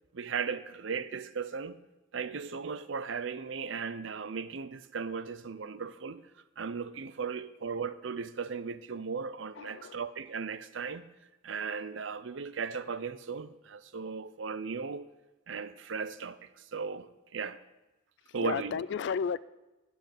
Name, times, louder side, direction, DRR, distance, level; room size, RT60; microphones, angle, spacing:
voice 1, 0.1-1.8 2.1-6.2 6.6-11.0 11.4-15.1 15.5-17.6 18.3-18.8, right 5 dB, 65° right, 0.6 m, -37 dB
voice 2, 9.6-10.0 18.4-19.4, left 6 dB, 60° left, 0.3 m, -33 dB
10.5 x 6.7 x 7.9 m
head